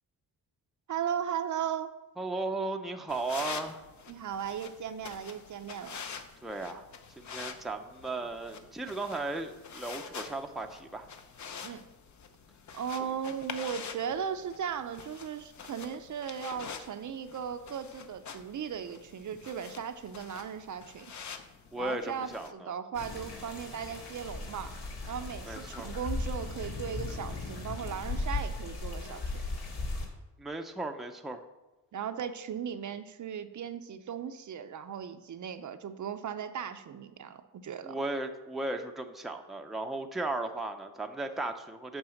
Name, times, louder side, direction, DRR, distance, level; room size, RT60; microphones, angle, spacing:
voice 1, 0.9-1.9 4.1-6.0 11.6-11.8 12.7-21.1 21.8-24.7 25.1-29.4 31.9-38.0, right 8 dB, 50° right, 9 dB, 0.6 m, -37 dB
voice 2, 2.2-3.9 6.4-6.9 7.2-11.1 21.7-22.7 25.5-25.9 30.4-31.4 37.8-42.0, right 2 dB, ahead, 4 dB, 0.6 m, -36 dB
sound 1, 3.1-22.5, left 6 dB, 45° left, 0.8 m, -46 dB
sound 2, 22.9-30.1, left 2 dB, 70° left, 2.0 m, -37 dB
8.0 x 5.5 x 7.1 m, 1.1 s
cardioid pair, 120°, 40 cm